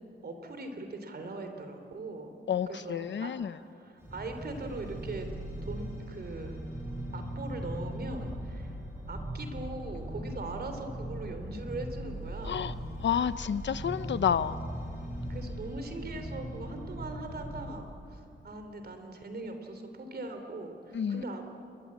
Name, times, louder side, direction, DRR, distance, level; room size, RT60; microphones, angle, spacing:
voice 1, 0.2-2.3 2.7-3.3 3.7-5.3 5.6-6.6 7.1-8.8 9.1-12.7 15.3-17.8 18.1-21.4, right 2 dB, 55° right, 6 dB, 3.3 m, -40 dB
voice 2, 2.5-3.6 12.5-12.7 13.0-14.6 20.9-21.2, left 8 dB, 70° left, 14 dB, 0.8 m, -29 dB
sound 1, 4.0-17.7, right 1 dB, 15° right, 6.5 m, -39 dB
28.5 x 22.0 x 8.7 m, 2.6 s
wide cardioid pair, 125°, 19 cm